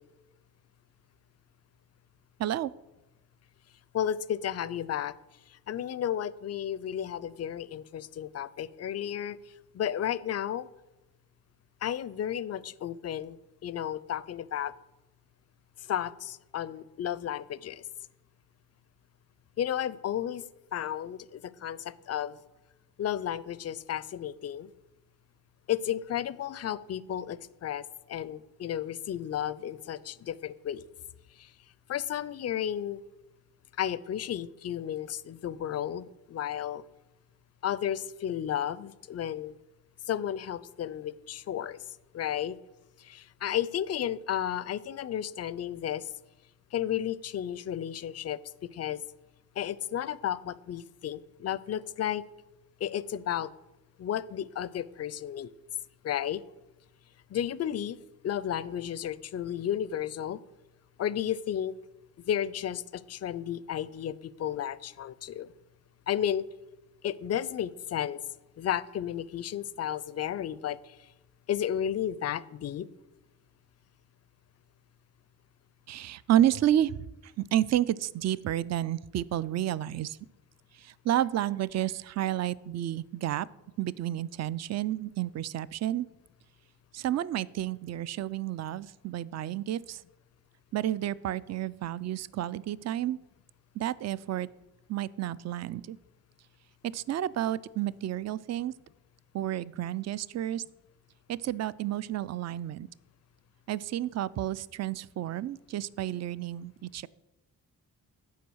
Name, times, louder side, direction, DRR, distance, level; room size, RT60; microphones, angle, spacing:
voice 1, 2.4-2.7 75.9-77.0 77.4-80.2 80.8-83.5 83.8-86.1 86.9-90.0 90.7-93.2 93.8-94.5 94.9-96.0 96.9-98.7 99.3-100.6 101.3-102.9 103.7-107.1, right 12 dB, 40° right, 19 dB, 0.4 m, -30 dB
voice 2, 3.9-5.1 5.7-9.4 9.7-10.7 11.8-13.4 13.6-14.7 15.9-17.8 19.6-20.5 20.7-22.4 23.0-24.7 25.7-27.8 28.1-30.8 31.4-31.5 31.9-33.0 33.8-36.8 37.6-39.6 40.1-41.8 42.1-42.6 43.0-46.1 46.7-48.4 48.7-49.0 49.6-52.2 52.8-53.5 54.0-55.5 56.0-56.4 57.3-58.0 58.2-60.4 61.0-61.7 62.3-65.5 66.1-66.5 67.0-68.2 68.6-70.9 71.5-72.9, left 10 dB, 35° left, 19 dB, 0.5 m, -33 dB
8.3 x 4.7 x 6.2 m, 1.0 s
supercardioid pair, 40°, 43 cm